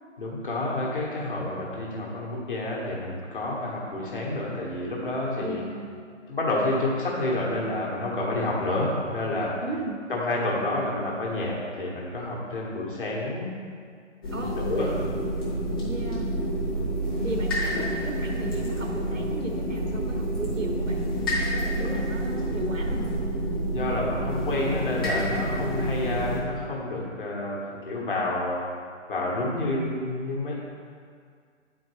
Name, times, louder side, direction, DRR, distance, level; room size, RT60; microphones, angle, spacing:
voice 1, 0.2-5.6 6.3-9.6 10.1-13.5 14.6-14.9 21.8-21.9 23.7-28.6 29.1-30.5, left 2 dB, 45° left, -4 dB, 1.4 m, -29 dB
voice 2, 5.4-6.0 9.6-10.0 14.3-15.0 15.8-16.3 17.2-21.1 21.3-23.2, right 2 dB, 85° right, 1 dB, 1.2 m, -35 dB
sound 1, 14.2-26.4, right 1 dB, 20° left, 1.0 m, -28 dB
9.4 x 4.4 x 3.2 m, 2.1 s
figure-of-eight pair, 145°, 38 cm